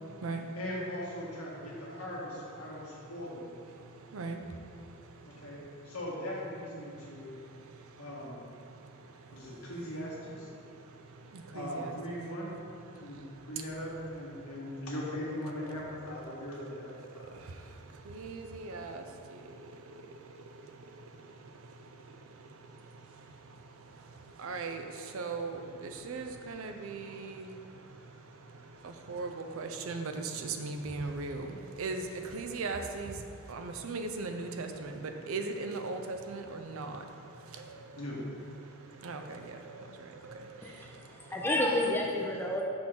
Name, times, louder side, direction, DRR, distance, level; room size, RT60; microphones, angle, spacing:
voice 1, 0.5-3.5 5.2-5.6 5.8-7.3 8.0-8.4 9.3-10.5 11.5-12.5 12.9-17.3 37.9-38.2, left 1 dB, 75° left, -5 dB, 1.6 m, -40 dB
voice 2, 11.6-11.9 18.1-19.0 24.4-24.8 25.1-25.6 26.0-27.4 29.1-31.5 31.8-32.0 32.3-33.1 33.5-34.9 35.3-37.0 39.0-39.4, right 3 dB, 65° right, 5 dB, 0.5 m, -37 dB
voice 3, 40.6-42.6, left 1 dB, 10° left, -2 dB, 0.5 m, -30 dB
6.2 x 3.8 x 6.1 m, 2.5 s
head